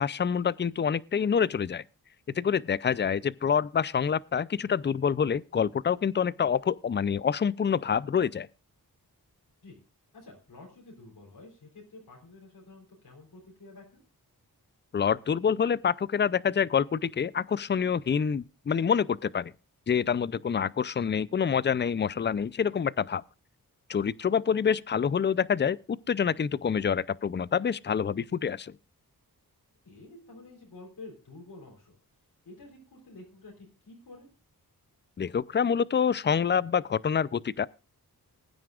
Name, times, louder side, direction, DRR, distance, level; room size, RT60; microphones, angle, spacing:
voice 1, 0.0-1.8 2.3-8.5 14.9-19.5 19.9-23.2 23.9-25.8 26.1-28.7 35.2-37.7, left 7 dB, 30° left, 0.5 m, -27 dB
voice 2, 10.1-14.0 29.8-32.0 32.5-34.3, left 2 dB, 85° left, 3.7 m, -49 dB
20.5 x 9.5 x 2.4 m
cardioid pair, 55°, 37 cm